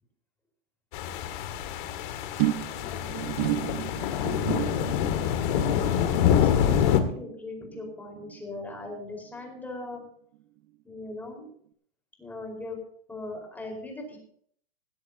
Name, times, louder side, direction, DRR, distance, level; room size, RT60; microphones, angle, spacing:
sound 1, 0.9-7.0, left 9 dB, 50° left, 2.0 m, -26 dB
sound 2, 2.4-9.0 9.2-9.7 10.0-10.1, right 16 dB, 55° right, 1.1 m, -34 dB
voice 1, 6.3-10.0 10.8-11.5 12.2-12.8 13.1-14.2, left 2 dB, 5° left, 0 dB, 4.7 m, -39 dB
18.0 x 16.0 x 2.9 m, 0.62 s
supercardioid pair, 150°, 31 cm